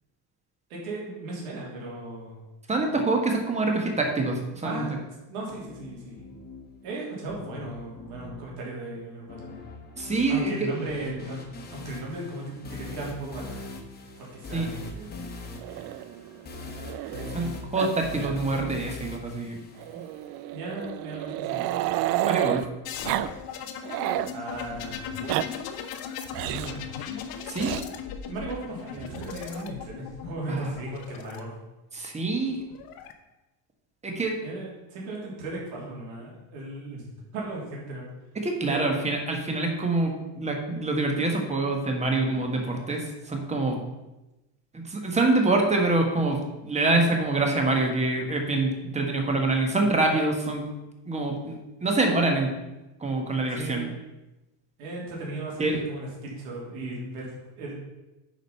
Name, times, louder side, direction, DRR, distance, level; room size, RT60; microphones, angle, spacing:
voice 1, 0.7-2.4 4.6-4.9 5.3-6.4 6.8-9.5 10.3-11.4 11.7-13.6 14.2-15.3 17.1-17.7 20.5-21.7 24.3-25.1 26.4-26.9 28.2-31.5 34.4-37.1 37.3-38.1 38.6-39.0 53.5-53.9 54.8-57.7, right 2 dB, 80° right, -4 dB, 3.4 m, -36 dB
voice 2, 2.7-4.8 10.0-10.5 14.5-14.7 17.3-19.6 22.2-22.6 27.5-27.8 30.5-30.7 31.9-32.6 34.0-34.4 38.3-43.8 44.7-50.7 51.1-51.5 51.8-52.5 53.0-53.9 55.6-55.8, right 2 dB, 15° right, 2 dB, 1.4 m, -25 dB
sound 1, 5.5-20.5, left 3 dB, 20° left, 1.4 m, -42 dB
Growling, 15.6-17.5 17.8-17.9 18.2-18.4 18.7-18.8 19.8-22.7 23.0-23.3 23.6-24.3 25.0-25.5 26.3-26.8 27.6-27.8 29.0-29.6, right 14 dB, 55° right, 0.5 m, -30 dB
sound 2, 22.8-31.4 32.5-33.1, left 8 dB, 50° left, 0.9 m, -38 dB
9.2 x 5.1 x 5.6 m, 1.0 s
cardioid pair, 145°, 46 cm